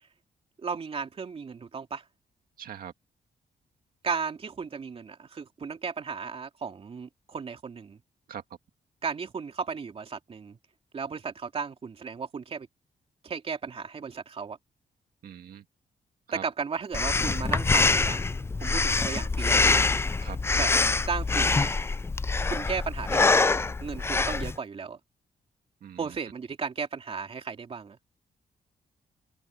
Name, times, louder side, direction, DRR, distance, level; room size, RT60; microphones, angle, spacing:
voice 1, 0.6-2.0 4.0-8.0 9.0-10.6 10.9-12.7 13.2-14.6 16.3-19.8 20.6-20.7 21.1-21.7 22.5-25.0 26.0-28.0, right 5 dB, 40° right, 2.9 m, -35 dB
voice 2, 2.6-2.9 8.3-8.4 15.2-15.6 16.3-16.4 20.2-20.4 25.8-26.0, right 9 dB, 75° right, 2.0 m, -41 dB
Breathing, 16.9-24.6, left 3 dB, 15° left, 0.4 m, -25 dB
open air
cardioid pair, 125°, 15 cm